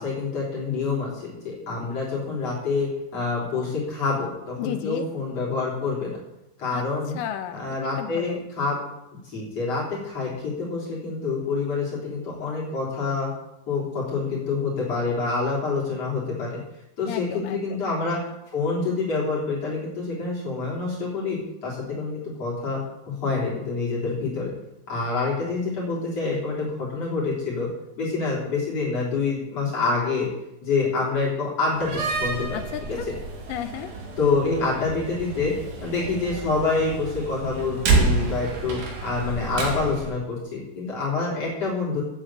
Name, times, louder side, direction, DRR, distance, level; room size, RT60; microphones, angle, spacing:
voice 1, 0.0-6.2 6.6-7.2 7.5-8.8 9.2-13.3 13.7-16.6 17.0-22.8 23.1-24.5 24.9-27.7 28.0-30.3 30.6-32.6 32.9-33.0 34.2-35.5 35.8-42.0, left 4 dB, 45° left, -6 dB, 4.4 m, -27 dB
voice 2, 4.6-5.1 6.7-6.9 7.2-8.4 17.1-17.9 32.5-33.1 33.5-33.9, left 10 dB, 80° left, 9 dB, 2.1 m, -33 dB
Slam, 31.7-40.1, right 3 dB, 70° right, 3.8 m, -29 dB
9.4 x 8.8 x 8.6 m, 0.90 s
omnidirectional pair, 4.3 m